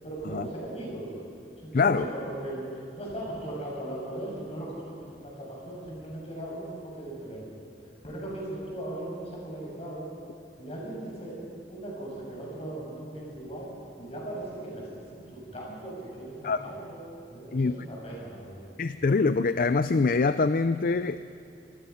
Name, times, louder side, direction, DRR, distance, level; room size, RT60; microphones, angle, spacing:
voice 1, 0.0-1.1 1.6-7.5 8.0-10.1 10.6-11.4 11.7-13.7 14.0-17.0 17.3-18.6, right 1 dB, 35° left, -3 dB, 6.9 m, -38 dB
voice 2, 1.7-2.1 16.4-16.7 17.5-17.8 18.8-21.2, left 4 dB, 50° left, 12 dB, 0.5 m, -24 dB
26.5 x 20.0 x 5.7 m, 2.5 s
head